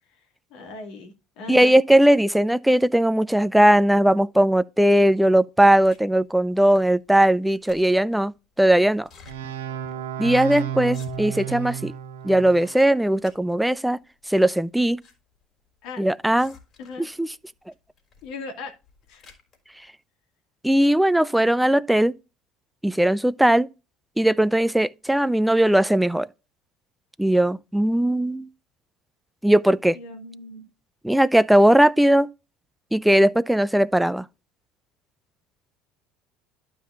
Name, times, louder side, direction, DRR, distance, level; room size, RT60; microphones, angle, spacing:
voice 1, 0.5-1.8 15.8-16.0 16.8-17.1 18.2-18.7 19.1-19.2 29.9-30.7, left 3 dB, 65° left, 2.1 m, -38 dB
voice 2, 1.5-9.1 10.2-11.9 12.2-14.0 14.3-15.0 16.0-16.5 17.0-17.3 20.6-22.1 22.8-23.7 24.2-26.3 27.2-28.5 29.4-30.0 31.0-32.3 32.9-34.2, right 1 dB, 5° right, 0.4 m, -19 dB
sound 1, 5.8-6.2 6.6-7.0 7.3-8.1 9.0-9.4 9.9-10.0 10.2-10.4 10.8-11.5 11.9-12.4 12.7-13.8 14.6-15.2 15.4-15.5 16.3-17.1 18.0-18.3 18.7-19.6, left 5 dB, 45° left, 3.7 m, -52 dB
sound 2, 9.3-12.9, right 9 dB, 90° right, 0.9 m, -32 dB
12.0 x 5.6 x 2.5 m
hypercardioid pair, 75°, 0 cm